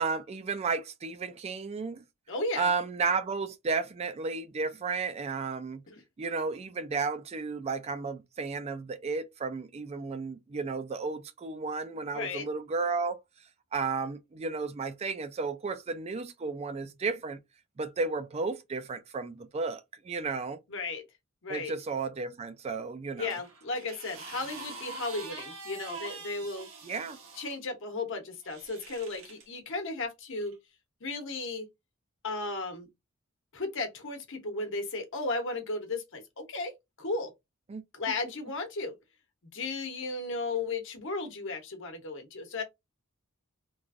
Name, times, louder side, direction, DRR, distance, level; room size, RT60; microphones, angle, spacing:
voice 1, 0.0-2.0 2.6-5.8 6.2-13.2 13.7-17.4 17.8-20.6 21.5-23.3 26.8-27.2 37.7-37.8, right 4 dB, 30° right, 0.3 m, -33 dB
voice 2, 2.3-2.7 5.9-6.0 12.1-12.4 20.7-21.0 21.4-21.7 23.1-26.7 27.4-30.6 31.0-31.7 32.2-32.9 33.5-37.3 37.9-38.9 39.5-42.6, left 3 dB, 60° left, 1.0 m, -35 dB
sound 1, 23.3-27.6 28.4-29.5 30.4-30.5, right 3 dB, 65° right, 0.9 m, -44 dB
3.1 x 2.5 x 2.4 m
head